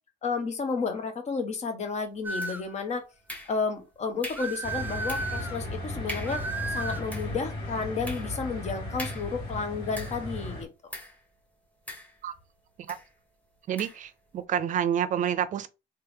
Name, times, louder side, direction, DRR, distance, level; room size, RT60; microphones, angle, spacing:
voice 1, 0.2-3.0 3.5-10.7, left 4 dB, 40° left, 1.1 m, -32 dB
sound 1, 2.2-2.7 4.3-5.6 6.3-7.1, right 3 dB, 10° right, 0.6 m, -34 dB
sound 2, 2.4-2.8 3.3-3.8 4.2-4.6 5.1-5.4 5.7-5.8 6.1-6.5 6.9-10.4 10.9-11.2 11.9-12.5 12.9-13.1 13.8-14.1, equal, 10° left, 1.5 m, -42 dB
sound 3, 4.6-10.6, left 2 dB, 65° left, 2.2 m, -36 dB
voice 2, 13.7-15.7, right 9 dB, 50° right, 0.6 m, -28 dB
3.4 x 3.1 x 3.5 m
cardioid pair, 110°, 17 cm